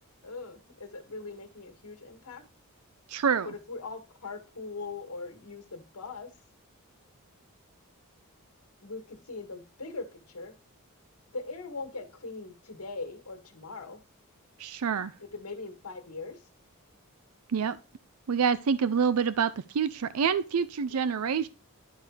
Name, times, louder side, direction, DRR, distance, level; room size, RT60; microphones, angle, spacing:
voice 1, 0.2-2.4 3.4-6.3 8.8-10.5 11.3-14.0 15.3-16.4, left 3 dB, 75° left, 2.0 m, -41 dB
voice 2, 3.1-3.5 14.6-15.1 17.5-17.8 18.3-21.5, right 6 dB, 75° right, 0.5 m, -27 dB
11.5 x 4.7 x 5.0 m
head